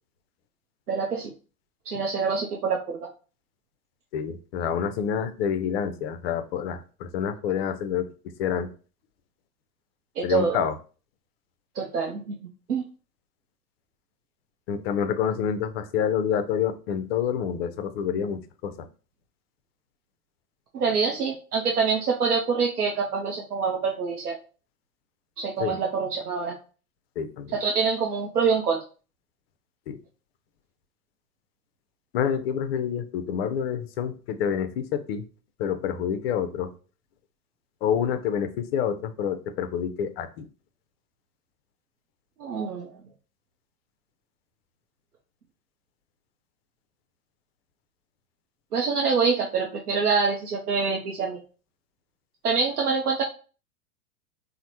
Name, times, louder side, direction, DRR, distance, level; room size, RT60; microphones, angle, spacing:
voice 1, 0.9-1.3 1.9-3.0 10.2-10.6 11.8-12.8 20.7-24.4 25.4-26.6 27.6-28.8 42.4-43.0 48.7-51.4 52.4-53.2, right 5 dB, 90° right, 0 dB, 0.5 m, -25 dB
voice 2, 4.1-8.1 8.4-8.7 10.2-10.8 14.7-18.9 25.6-25.8 27.2-27.6 29.9-30.0 32.1-35.2 35.6-36.7 37.8-40.5, left 8 dB, 45° left, 10 dB, 0.4 m, -28 dB
3.1 x 2.0 x 2.8 m, 0.37 s
figure-of-eight pair, 90°, 44 cm